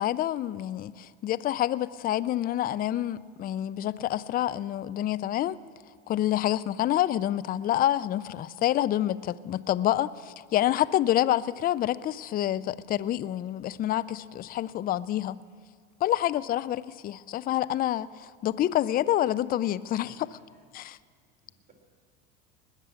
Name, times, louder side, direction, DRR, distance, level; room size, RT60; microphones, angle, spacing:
voice 1, 0.0-5.6 6.1-15.4 16.0-20.1 20.7-21.0, left 12 dB, 30° left, 0.4 m, -27 dB
voice 2, 14.4-14.7 20.0-20.7 21.4-21.7, right 1 dB, 25° right, 3.3 m, -59 dB
20.5 x 6.8 x 7.6 m
supercardioid pair, 95°, 32 cm